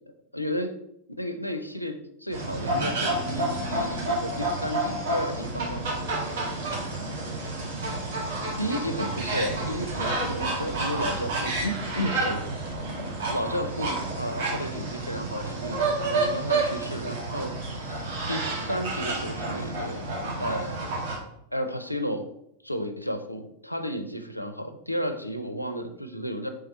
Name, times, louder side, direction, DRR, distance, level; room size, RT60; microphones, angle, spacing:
voice 1, 0.3-0.8 1.2-5.9 6.2-6.5 8.6-12.5 13.3-20.8 21.5-22.3 22.6-26.5, equal, 90° left, 7 dB, 0.4 m, -33 dB
sound 1, 2.3-21.2, right 2 dB, 55° right, 1.2 m, -30 dB
3.4 x 3.3 x 4.2 m, 0.77 s
figure-of-eight pair, 90°, 0 cm